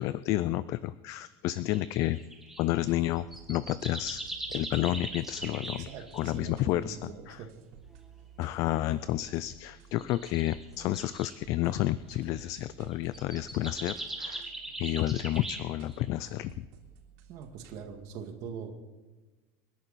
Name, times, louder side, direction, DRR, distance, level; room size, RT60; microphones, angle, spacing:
voice 1, 0.0-2.2 2.6-4.2 4.5-5.9 6.1-7.4 8.4-14.5 14.8-16.6, left 15 dB, 35° left, 16 dB, 0.4 m, -30 dB
sound 1, 1.7-2.7 3.2-6.4 8.0-8.1 8.8-9.2 10.0-11.4 12.2-12.5 12.9-16.1, right 2 dB, 5° right, 1.5 m, -41 dB
sound 2, 2.6-17.8, right 8 dB, 65° right, 3.3 m, -54 dB
voice 2, 5.8-7.5 17.3-18.7, right 6 dB, 40° right, 4 dB, 2.0 m, -42 dB
28.5 x 11.0 x 4.2 m, 1.3 s
cardioid pair, 175°, 9 cm